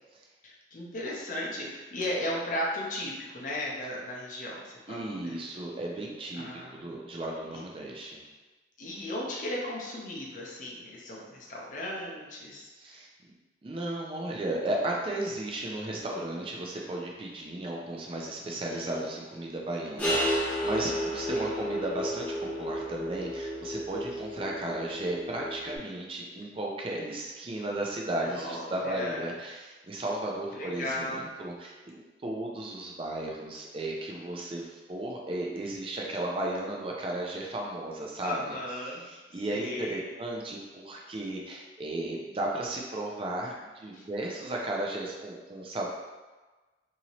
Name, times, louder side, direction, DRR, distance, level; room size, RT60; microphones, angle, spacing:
voice 1, 0.4-5.4 6.3-7.0 7.5-7.6 8.8-13.0 18.5-19.1 21.3-21.6 28.2-29.3 30.5-31.3 38.2-39.0 39.3-40.0 43.9-44.0, left 1 dB, 45° left, -4 dB, 0.6 m, -36 dB
voice 2, 4.9-8.2 12.8-13.1 13.6-38.6 39.1-45.9, right 1 dB, 30° right, -1 dB, 0.4 m, -35 dB
sound 1, 20.0-25.8, equal, 10° left, 0.7 m, -32 dB
2.9 x 2.7 x 2.9 m, 1.2 s
head